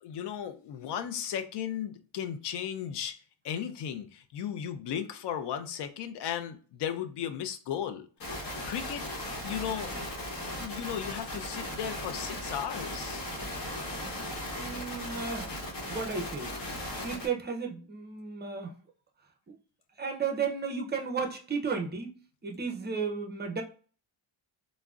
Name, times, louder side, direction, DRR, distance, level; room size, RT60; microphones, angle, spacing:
voice 1, 0.0-3.2 3.4-8.1 8.6-9.0 9.4-9.9 10.6-13.2, left 9 dB, 65° left, 0.5 m, -35 dB
sound 1, 8.2-17.3, left 1 dB, 50° left, 1.1 m, -37 dB
voice 2, 14.5-15.5 15.9-16.5 17.0-18.7 19.5-19.6 20.0-22.2 22.4-23.6, right 5 dB, 25° right, 0.5 m, -33 dB
3.5 x 2.1 x 2.3 m
cardioid pair, 125°, 45 cm